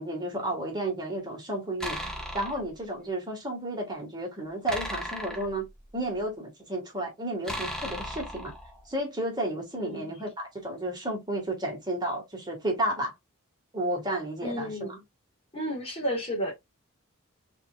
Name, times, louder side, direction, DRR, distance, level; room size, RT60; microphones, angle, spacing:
voice 1, 0.0-2.0 2.3-5.7 5.9-8.5 8.9-13.1 13.7-15.0, right 1 dB, 20° right, 1.7 m, -32 dB
sound 1, 1.8-2.7 4.7-6.2 7.5-8.9, equal, 5° left, 1.1 m, -36 dB
voice 2, 9.8-10.1 14.4-15.0 15.5-16.5, equal, 30° left, 1.8 m, -33 dB
5.5 x 3.4 x 2.4 m
head